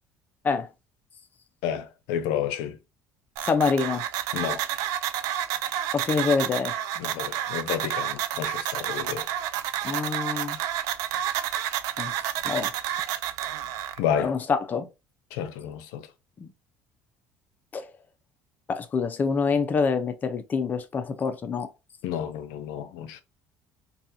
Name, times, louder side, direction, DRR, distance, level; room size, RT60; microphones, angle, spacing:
voice 1, 1.6-2.8 4.3-4.6 7.0-9.3 14.0-14.3 15.3-16.1 22.0-23.2, left 9 dB, 90° left, 0.5 m, -30 dB
voice 2, 3.4-4.0 5.9-6.7 9.8-10.6 12.0-12.1 12.4-12.7 14.2-14.9 16.4-16.5 17.7-17.9 18.7-21.7, left 5 dB, 30° left, 0.6 m, -26 dB
sound 1, 3.4-14.0, right 11 dB, 75° right, 0.4 m, -30 dB
4.1 x 2.4 x 2.6 m
cardioid pair, 125°, 6 cm